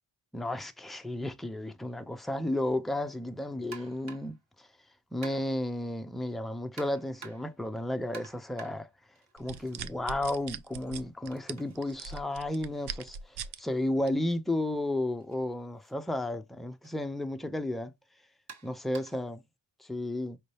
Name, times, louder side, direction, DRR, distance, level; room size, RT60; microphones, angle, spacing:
voice 1, 0.3-4.7 5.1-8.9 9.3-17.9 18.6-19.4 19.8-20.4, left 1 dB, ahead, 0.3 m, -33 dB
sound 1, 3.7-4.4 5.2-5.7 6.8-7.6 8.1-9.9 10.2-14.1 15.2-15.4 15.8-15.9 16.8-17.0 18.5-19.3, right 5 dB, 40° right, 1.3 m, -51 dB
sound 2, 9.4-13.6 14.1-14.3, right 7 dB, 60° right, 0.6 m, -40 dB
5.3 x 2.7 x 3.2 m
cardioid pair, 135°, 44 cm